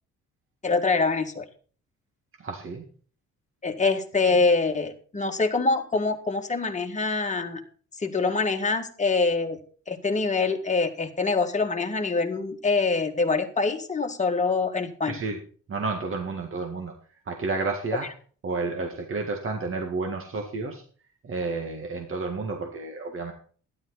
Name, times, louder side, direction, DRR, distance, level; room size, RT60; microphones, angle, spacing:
voice 1, 0.6-1.4 3.6-7.6 8.0-9.6 9.9-15.2, left 3 dB, 25° left, 4 dB, 1.9 m, -25 dB
voice 2, 2.4-2.9 15.1-15.4 15.7-16.9 17.3-18.1 18.4-20.8 21.2-23.3, right 3 dB, 45° right, 2 dB, 2.0 m, -31 dB
12.5 x 11.0 x 4.1 m, 0.43 s
cardioid pair, 90°, 30 cm